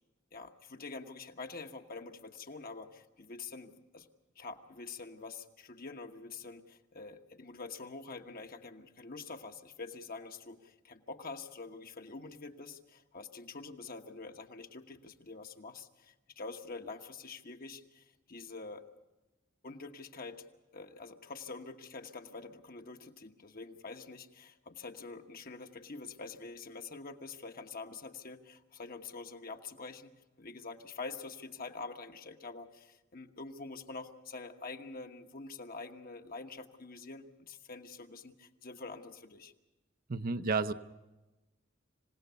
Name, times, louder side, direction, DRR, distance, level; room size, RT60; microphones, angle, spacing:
voice 1, 0.3-4.1 4.3-18.8 19.6-20.5 20.7-39.5, left 3 dB, 50° left, 6 dB, 1.3 m, -46 dB
voice 2, 40.1-40.7, right 4 dB, 50° right, 10 dB, 0.7 m, -31 dB
26.5 x 17.5 x 6.9 m, 1.1 s
head